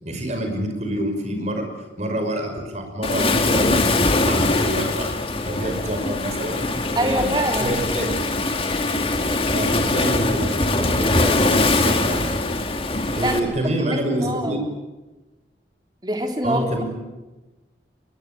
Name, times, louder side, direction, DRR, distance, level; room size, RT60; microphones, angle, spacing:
voice 1, 0.0-1.7 2.0-5.1 5.4-6.6 6.9-7.3 7.6-8.3 9.5-12.3 13.2-14.6 16.4-16.8, right 1 dB, 40° right, 5 dB, 5.8 m, -27 dB
Waves surf, 3.0-13.4, left 2 dB, 30° left, 2.2 m, -22 dB
voice 2, 7.0-8.0 13.2-13.5 13.8-14.6 16.0-16.6, right 1 dB, 25° right, 4 dB, 3.2 m, -25 dB
24.0 x 21.5 x 9.2 m, 1.1 s
head